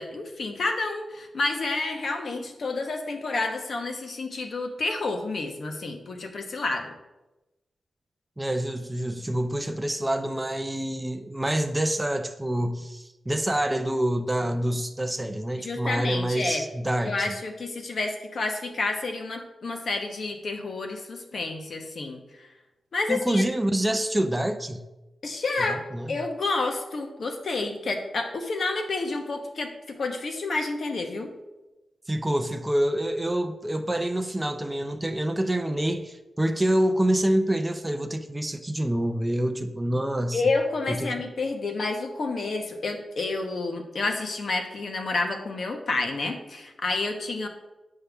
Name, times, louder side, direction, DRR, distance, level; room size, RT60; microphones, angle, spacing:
voice 1, 0.0-6.9 15.6-16.6 17.0-22.5 22.9-23.4 25.2-25.8 26.1-31.3 40.3-47.5, left 3 dB, 55° left, 4 dB, 1.0 m, -29 dB
voice 2, 8.4-17.3 23.1-24.8 25.7-26.1 32.1-40.5 40.9-41.1, right 1 dB, 10° right, 6 dB, 0.4 m, -27 dB
9.3 x 5.5 x 3.5 m, 1.0 s
wide cardioid pair, 160°, 0 cm